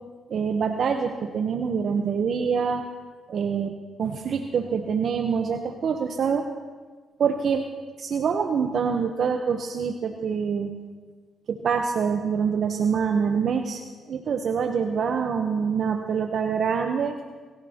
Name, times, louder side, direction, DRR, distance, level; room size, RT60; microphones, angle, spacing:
voice 1, 0.3-2.9 3.3-3.7 4.0-6.5 7.2-7.7 8.0-10.7 11.5-13.8 14.1-17.2, right 6 dB, 65° right, 4 dB, 0.9 m, -25 dB
23.5 x 16.0 x 2.9 m, 1.4 s
cardioid pair, 75°, 0 cm